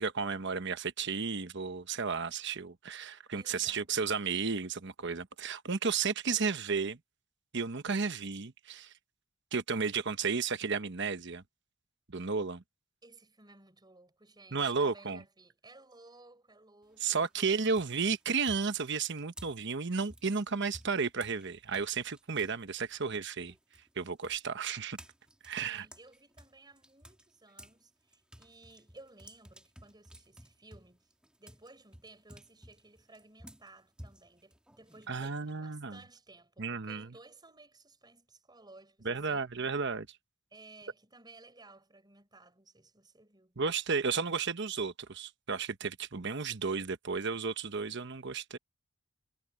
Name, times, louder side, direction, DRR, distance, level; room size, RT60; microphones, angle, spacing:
voice 1, 0.0-7.0 7.5-8.9 9.5-11.4 12.1-12.6 14.5-15.2 17.0-23.5 24.0-25.0 25.4-25.8 35.1-36.0 36.6-37.1 39.0-40.1 43.6-48.6, right 5 dB, 55° right, 1.1 m, -33 dB
voice 2, 3.3-3.9 13.0-17.7 25.6-31.1 31.4-39.5 40.5-43.6, right 2 dB, 20° right, 5.2 m, -57 dB
sound 1, 16.8-17.2 17.7-22.6 22.9-27.8 28.1-35.5, right 1 dB, 5° right, 1.6 m, -54 dB
head